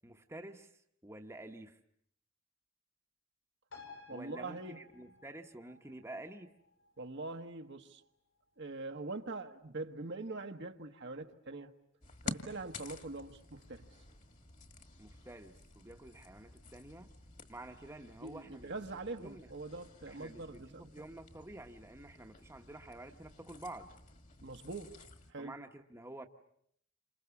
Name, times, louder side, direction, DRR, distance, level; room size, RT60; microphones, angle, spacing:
voice 1, 0.0-0.7 1.0-1.8 4.1-6.5 15.0-17.1 17.5-18.7 19.2-19.5 20.1-23.9 25.4-26.3, right 1 dB, 15° right, 1.1 m, -49 dB
sound 1, 3.7-10.7 11.0-11.1, left 4 dB, 85° left, 7.2 m, -58 dB
voice 2, 4.1-4.8 7.0-8.0 8.6-11.7 12.2-13.9 18.2-20.9 24.4-24.9 25.3-25.5, right 3 dB, 60° right, 1.3 m, -43 dB
sound 2, 12.0-25.3, left 3 dB, 40° left, 1.9 m, -51 dB
29.0 x 27.0 x 7.1 m
head